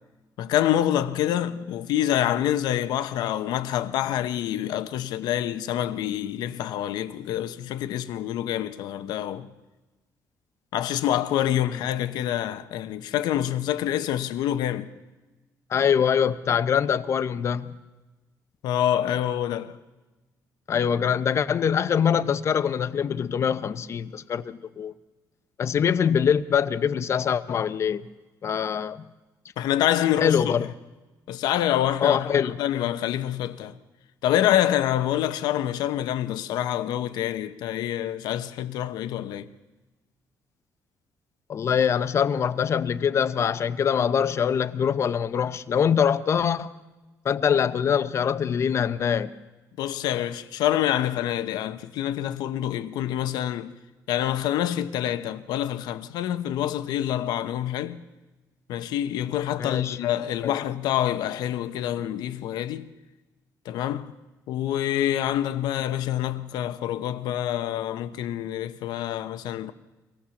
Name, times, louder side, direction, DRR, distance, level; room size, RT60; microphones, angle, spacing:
voice 1, 0.4-9.5 10.7-14.9 18.6-19.8 29.6-30.6 31.3-33.8 34.2-39.5 49.8-53.7 54.1-58.0 58.7-62.9 63.6-64.1 64.5-69.7, left 11 dB, 85° left, 0.9 m, -26 dB
voice 2, 15.7-17.7 20.7-24.9 25.6-28.0 28.4-29.0 30.2-30.7 32.0-32.6 41.5-46.7 47.2-49.3 59.6-60.0 60.4-60.6, left 7 dB, 40° left, 0.8 m, -24 dB
24.0 x 17.5 x 7.1 m
cardioid pair, 130°, 7 cm